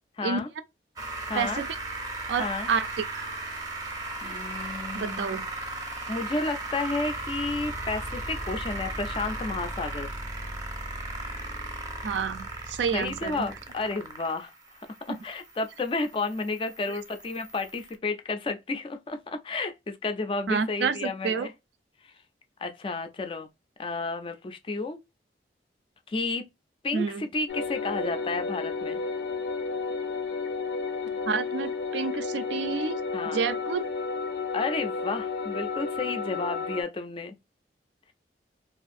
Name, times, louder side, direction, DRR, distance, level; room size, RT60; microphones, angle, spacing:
voice 1, 0.2-0.5 1.3-1.6 2.4-2.7 4.2-5.3 6.1-10.1 12.9-14.5 15.1-21.5 22.6-23.5 23.8-25.0 26.1-26.4 26.8-29.0 33.1-33.4 34.5-37.4, left 3 dB, 30° left, 0.3 m, -31 dB
sound 1, 1.0-17.9, right 2 dB, 20° right, 0.5 m, -37 dB
voice 2, 1.3-1.7 2.3-3.2 4.9-5.5 12.0-13.5 15.1-15.2 20.5-21.5 26.9-27.2 31.3-33.0 33.3-33.9, right 6 dB, 80° right, 0.4 m, -29 dB
sound 2, 27.5-36.8, left 4 dB, 85° left, 0.5 m, -32 dB
2.5 x 2.4 x 2.4 m
head